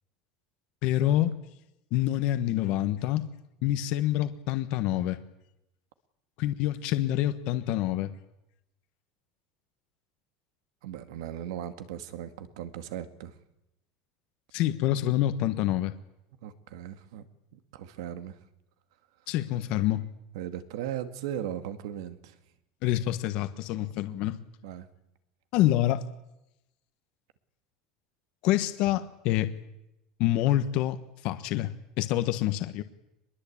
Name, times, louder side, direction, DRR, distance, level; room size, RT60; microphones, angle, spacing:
voice 1, 0.8-1.4 1.9-3.3 3.6-5.2 6.4-8.1 14.5-15.9 19.3-20.0 22.8-24.4 25.5-26.0 28.4-29.5 30.2-31.0 31.2-31.7 32.0-32.8, left 13 dB, 50° left, 10 dB, 1.3 m, -26 dB
voice 2, 10.8-13.3 16.4-17.3 17.5-18.4 20.3-22.4 23.7-23.9 24.1-24.2 24.6-24.9, right 10 dB, 80° right, 10 dB, 2.1 m, -38 dB
24.0 x 21.5 x 8.7 m, 0.87 s
cardioid pair, 170°, 2 cm